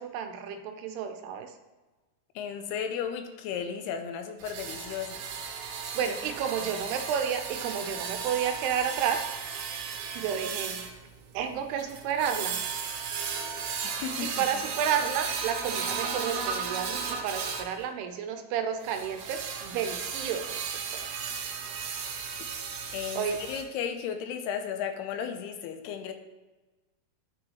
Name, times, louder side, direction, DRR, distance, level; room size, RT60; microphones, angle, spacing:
voice 1, 0.0-1.5 5.9-9.2 10.1-10.8 11.3-12.6 13.8-21.0 23.2-23.4, right 8 dB, 90° right, 6 dB, 2.7 m, -31 dB
voice 2, 2.4-5.3 6.1-6.2 13.8-14.5 22.9-26.1, left 8 dB, 85° left, 7 dB, 2.7 m, -34 dB
sound 1, 4.4-17.7 18.8-23.6, right 6 dB, 75° right, 2.5 m, -35 dB
9.9 x 6.2 x 3.1 m, 1.2 s
omnidirectional pair, 4.7 m